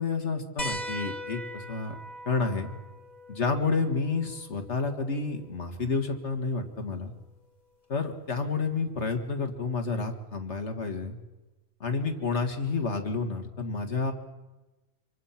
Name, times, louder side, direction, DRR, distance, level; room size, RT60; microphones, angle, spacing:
voice 1, 0.0-2.0 2.3-2.7 3.3-7.1 7.9-11.2 11.8-14.1, left 4 dB, 75° left, 5 dB, 2.2 m, -30 dB
sound 1, 0.6-5.7 7.2-7.3 9.0-9.1, equal, 40° left, 1.8 m, -40 dB
27.0 x 23.5 x 5.9 m, 1.1 s
omnidirectional pair, 1.2 m